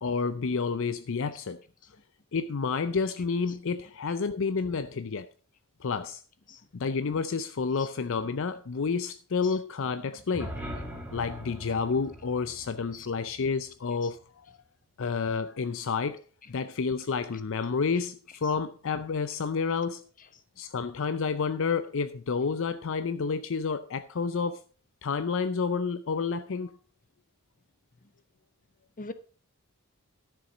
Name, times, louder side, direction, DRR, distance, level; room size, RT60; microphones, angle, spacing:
voice 1, 0.0-1.6 2.3-5.3 5.8-6.2 6.8-10.6 11.1-14.6 15.0-16.2 16.5-20.0 20.6-24.6 25.0-26.8, left 5 dB, 60° left, 0.5 m, -30 dB
voice 2, 1.3-1.4 3.5-3.6 4.1-4.2 6.5-6.6 7.8-7.9 9.4-9.6 12.9-13.1 14.0-14.2 17.9-18.1 18.4-18.5 29.0-29.1, left 3 dB, 40° left, 1.1 m, -44 dB
sound 1, 10.2-14.2, equal, 5° right, 2.0 m, -42 dB
12.5 x 6.9 x 5.1 m
head